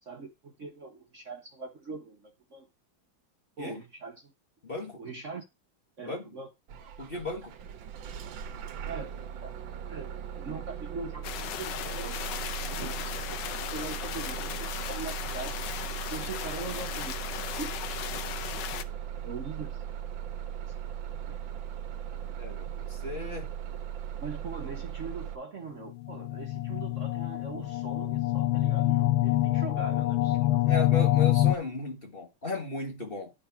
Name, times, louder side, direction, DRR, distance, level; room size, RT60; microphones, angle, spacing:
voice 1, 0.0-2.7 3.6-4.3 5.0-5.4 6.0-6.5 8.9-9.5 9.9-12.2 12.6-13.4 13.7-15.6 16.1-17.2 17.5-17.7 18.4-18.5 19.2-19.8 20.7-20.8 21.3-21.4 22.1-22.3 22.7-22.8 24.2-30.6, right 4 dB, 45° right, 1.3 m, -41 dB
voice 2, 4.6-5.0 6.0-6.2 7.0-7.6 12.7-13.0 22.4-23.5 30.6-33.3, left 3 dB, 30° left, 1.6 m, -36 dB
Bus / Engine starting, 6.7-25.4, right 9 dB, 70° right, 1.7 m, -38 dB
sound 1, 11.2-18.8, left 10 dB, 70° left, 1.3 m, -37 dB
sound 2, 25.9-31.6, left 15 dB, 85° left, 1.5 m, -25 dB
10.5 x 4.2 x 5.6 m
omnidirectional pair, 2.2 m